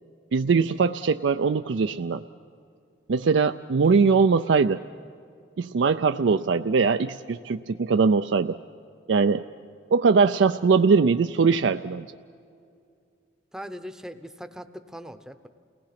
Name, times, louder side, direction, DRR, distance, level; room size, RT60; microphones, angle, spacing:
voice 1, 0.3-2.2 3.1-4.8 5.6-8.6 9.1-9.4 9.9-12.1, right 5 dB, 75° right, 8 dB, 0.4 m, -21 dB
voice 2, 13.5-15.5, equal, 5° right, 9 dB, 0.7 m, -40 dB
29.0 x 19.0 x 5.9 m, 2.4 s
head